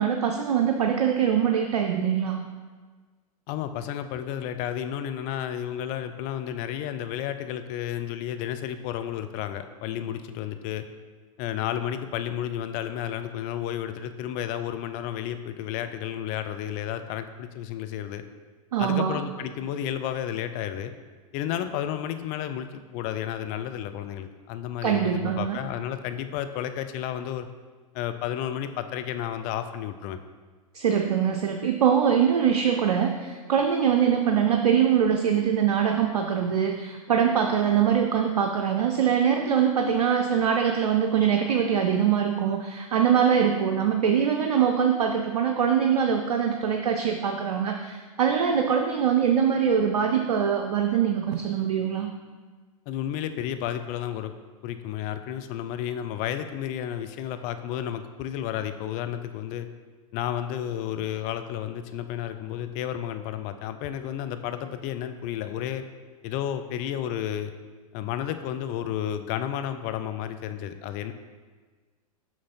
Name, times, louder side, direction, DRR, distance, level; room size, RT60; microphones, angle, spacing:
voice 1, 0.0-2.4 18.7-19.2 24.8-25.6 30.7-52.1, right 8 dB, 80° right, 4 dB, 0.6 m, -23 dB
voice 2, 3.5-10.8 11.4-18.2 18.8-20.9 21.3-27.5 27.9-30.2 52.9-54.3 54.6-59.7 60.1-65.8 66.2-67.5 67.9-71.1, left 10 dB, 45° left, 9 dB, 0.6 m, -32 dB
6.2 x 6.0 x 4.2 m, 1.4 s
hypercardioid pair, 100°, 19 cm